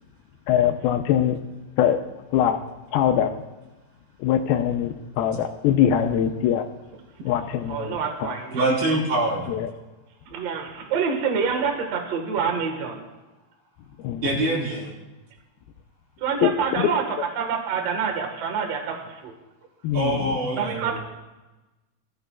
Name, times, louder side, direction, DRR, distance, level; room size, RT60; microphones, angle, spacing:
voice 1, 0.5-1.4 1.8-2.0 2.3-2.6 2.9-3.4 4.2-6.7 7.2-8.4 9.5-9.7 14.0-14.3 16.4-16.9 19.8-20.4, left 10 dB, 80° left, 6 dB, 2.5 m, -22 dB
voice 2, 7.7-8.6 10.3-13.1 14.4-14.6 16.2-17.0 17.4-19.3 20.5-21.0, right 6 dB, 50° right, 2 dB, 2.2 m, -27 dB
voice 3, 8.5-9.5 14.2-14.9 19.9-21.0, right 2 dB, 70° right, -5 dB, 6.7 m, -24 dB
22.0 x 14.0 x 2.4 m, 1.1 s
omnidirectional pair, 4.6 m